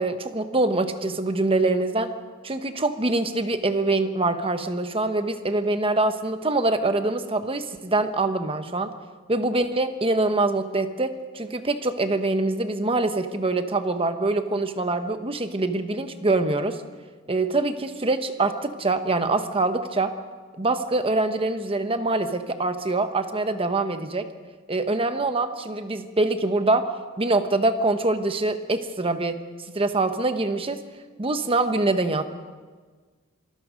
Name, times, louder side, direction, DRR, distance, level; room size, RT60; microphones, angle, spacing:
voice 1, 0.0-2.1 2.4-8.9 9.3-16.8 17.3-20.1 20.6-24.3 24.7-26.9 27.2-29.4 29.7-30.8 31.2-32.2, right 2 dB, 25° right, 9 dB, 1.1 m, -24 dB
26.5 x 19.5 x 5.2 m, 1.5 s
head